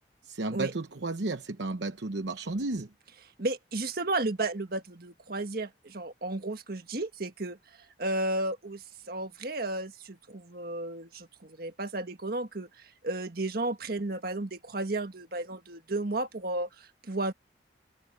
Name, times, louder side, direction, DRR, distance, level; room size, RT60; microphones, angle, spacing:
voice 1, 0.2-2.9, right 2 dB, 70° right, 0.9 m, -33 dB
voice 2, 3.4-7.6 8.0-17.3, right 2 dB, 55° right, 1.6 m, -33 dB
head